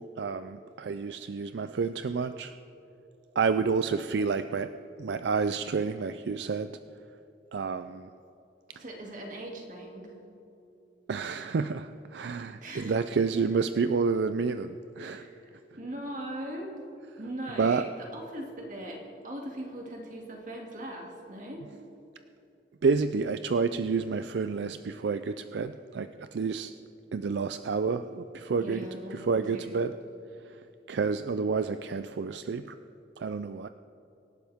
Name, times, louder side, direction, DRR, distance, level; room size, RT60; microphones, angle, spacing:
voice 1, 0.0-2.5 3.4-4.7 5.0-6.7 7.5-8.1 11.1-15.3 17.6-17.9 22.8-26.7 27.1-28.8 29.1-29.9 30.9-32.7 33.2-33.7, right 5 dB, 75° right, 10 dB, 0.4 m, -29 dB
voice 2, 8.7-10.2 12.6-13.1 15.0-15.5 15.8-16.7 17.1-21.7 28.6-29.8, right 1 dB, 45° right, 0 dB, 2.4 m, -40 dB
25.5 x 11.5 x 3.6 m, 2.8 s
head